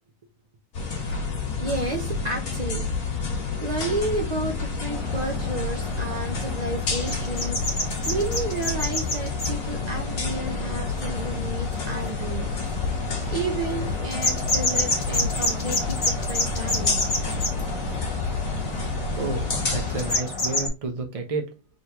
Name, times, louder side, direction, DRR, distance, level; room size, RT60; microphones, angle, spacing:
sound 1, 0.7-20.2, left 4 dB, 55° left, 1.7 m, -29 dB
voice 1, 1.3-2.9 3.6-12.5 13.3-17.0, right 2 dB, 60° right, 0.4 m, -31 dB
sound 2, 4.9-20.7, left 2 dB, 35° left, 1.4 m, -30 dB
voice 2, 19.2-21.5, right 3 dB, 30° right, 0.7 m, -31 dB
4.2 x 3.6 x 3.0 m
omnidirectional pair, 1.8 m